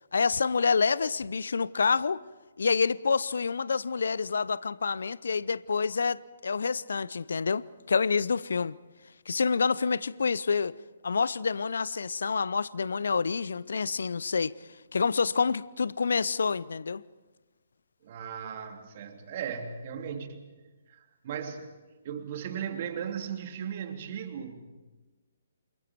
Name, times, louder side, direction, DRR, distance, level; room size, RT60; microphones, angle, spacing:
voice 1, 0.1-2.2 2.6-8.8 9.3-10.8 11.0-14.5 14.9-17.0, left 5 dB, 65° left, 0.7 m, -27 dB
voice 2, 18.0-20.5 20.9-21.7 22.0-24.7, right 8 dB, 45° right, 2.9 m, -37 dB
28.5 x 27.5 x 4.6 m
figure-of-eight pair, 130°, 0 cm